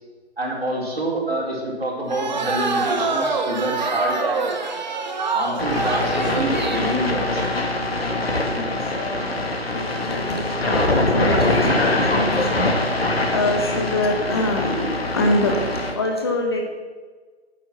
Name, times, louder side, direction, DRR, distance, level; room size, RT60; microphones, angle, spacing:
voice 1, 0.4-4.5 5.2-7.4, right 1 dB, 60° right, -2 dB, 4.3 m, -27 dB
sound 1, 2.1-6.9, right 4 dB, 40° right, 1.3 m, -25 dB
sound 2, 5.6-15.9, left 2 dB, 60° left, 2.2 m, -23 dB
voice 2, 8.5-12.8 13.3-15.6 15.9-16.6, left 1 dB, 25° left, 2 dB, 1.0 m, -25 dB
12.5 x 9.3 x 6.2 m, 1.5 s
figure-of-eight pair, 150°, 33 cm